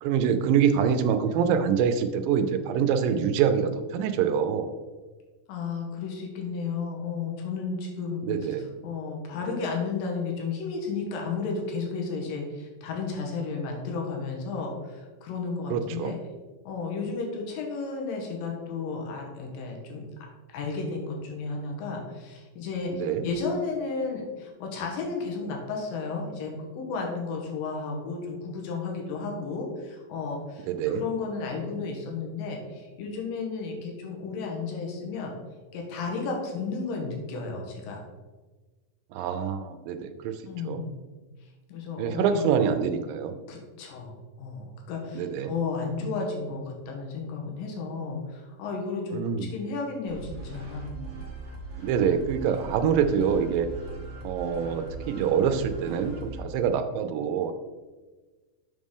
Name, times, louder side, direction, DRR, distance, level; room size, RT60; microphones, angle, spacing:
voice 1, 0.0-4.7 8.3-8.7 15.7-16.1 23.0-23.3 30.7-31.0 39.1-40.4 40.7-40.8 42.0-43.3 45.1-45.5 49.1-49.5 51.8-53.7 54.2-57.5, right 7 dB, 85° right, 8 dB, 2.3 m, -25 dB
voice 2, 5.5-8.2 8.6-16.2 16.7-20.0 20.5-22.9 23.2-35.3 35.7-38.0 40.5-40.9 41.7-42.5 43.5-51.0, left 4 dB, 85° left, 0 dB, 2.8 m, -33 dB
sound 1, 50.1-56.4, right 3 dB, 50° right, 1.4 m, -39 dB
6.5 x 6.4 x 3.6 m, 1.3 s
omnidirectional pair, 3.9 m